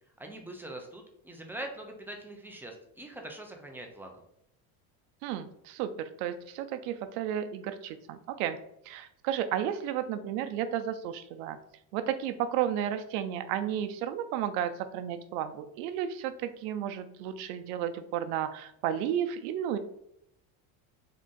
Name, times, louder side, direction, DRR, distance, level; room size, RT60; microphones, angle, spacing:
voice 1, 0.2-4.1, right 1 dB, 5° right, 2 dB, 0.3 m, -43 dB
voice 2, 5.2-8.6 8.9-11.6 11.9-19.8, right 10 dB, 80° right, 9 dB, 0.6 m, -33 dB
3.7 x 2.5 x 3.7 m, 0.76 s
cardioid pair, 130°, 41 cm